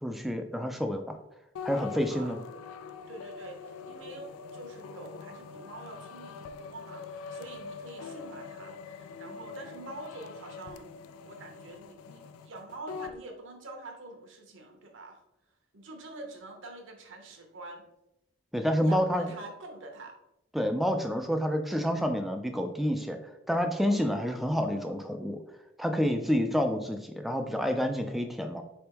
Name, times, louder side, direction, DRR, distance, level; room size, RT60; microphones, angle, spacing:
voice 1, 0.0-1.2 1.6-2.4 18.5-19.3 20.5-23.2 23.5-25.4 25.8-28.6, equal, ahead, 5 dB, 0.3 m, -28 dB
sound 1, 1.6-13.2, left 5 dB, 90° left, 0.3 m, -44 dB
voice 2, 2.1-2.6 3.1-10.9 11.2-15.2 15.7-17.8 18.8-20.1, right 2 dB, 65° right, 2 dB, 0.9 m, -46 dB
4.4 x 3.4 x 2.9 m, 0.86 s
head